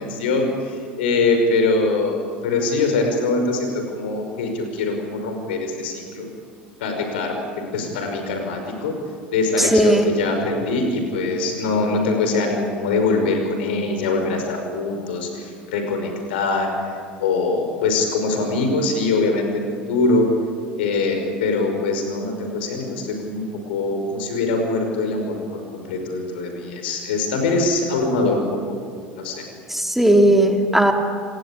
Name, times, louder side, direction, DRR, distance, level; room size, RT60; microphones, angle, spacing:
voice 1, 0.0-6.3 6.8-7.4 7.7-9.0 9.3-20.3 20.8-28.5 29.2-29.4, left 3 dB, 75° left, 4 dB, 5.6 m, -23 dB
voice 2, 9.6-10.1 29.7-30.9, right 1 dB, 5° right, 4 dB, 2.7 m, -16 dB
27.5 x 20.0 x 8.7 m, 2.2 s
hypercardioid pair, 75°, 6 cm